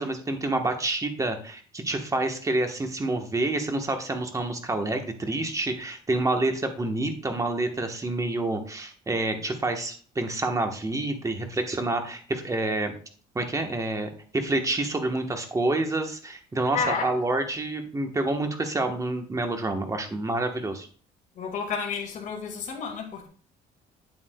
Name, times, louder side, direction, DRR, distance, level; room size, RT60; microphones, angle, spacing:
voice 1, 0.0-12.9 13.3-20.9, right 2 dB, 20° right, 1.2 m, -28 dB
voice 2, 16.7-17.1 21.4-23.3, left 6 dB, 50° left, 2.1 m, -30 dB
8.5 x 7.7 x 2.3 m
cardioid pair, 110°, 17 cm